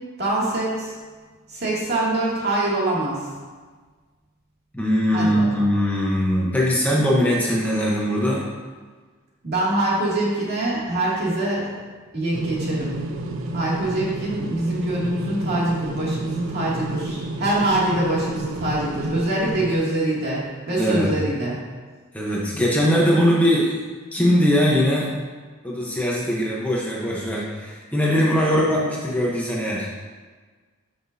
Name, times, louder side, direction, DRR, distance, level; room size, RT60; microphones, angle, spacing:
voice 1, 0.2-0.9 1.5-3.3 5.1-5.5 9.4-11.8 12.1-13.1 13.5-21.6, right 1 dB, 50° right, -6 dB, 2.5 m, -24 dB
voice 2, 4.7-8.5 20.8-21.1 22.1-23.8 24.1-25.1 25.6-29.9, equal, 5° left, -4 dB, 1.0 m, -21 dB
sound 1, 12.3-19.8, right 2 dB, 85° right, 0.7 m, -30 dB
12.0 x 6.0 x 2.8 m, 1.4 s
head